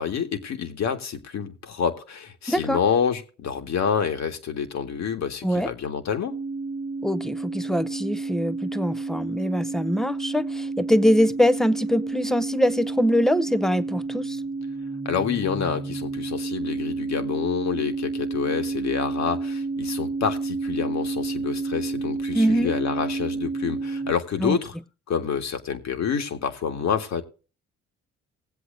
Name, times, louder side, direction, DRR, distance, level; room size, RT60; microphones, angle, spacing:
voice 1, 0.0-6.3 15.1-24.8 25.1-27.2, left 7 dB, 65° left, 1.9 m, -28 dB
voice 2, 2.5-2.8 5.4-5.7 7.0-14.4 22.3-22.7 24.4-24.6, equal, ahead, 0.6 m, -23 dB
sound 1, 6.3-24.1, right 3 dB, 15° right, 0.9 m, -30 dB
20.0 x 8.0 x 2.6 m
cardioid pair, 90°, 30 cm